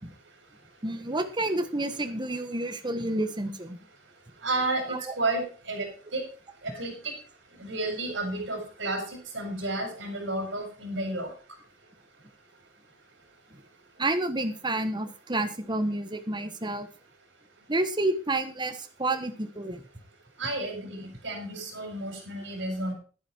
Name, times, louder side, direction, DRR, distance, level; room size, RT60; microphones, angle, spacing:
voice 1, 0.8-3.8 4.9-5.1 13.5-13.6 14.0-16.9 17.7-19.8, right 2 dB, 25° right, 9 dB, 1.4 m, -29 dB
voice 2, 4.4-6.2 6.6-7.1 7.6-11.3 20.4-22.9, right 2 dB, 65° right, 4 dB, 5.1 m, -32 dB
11.5 x 10.0 x 4.5 m, 0.38 s
head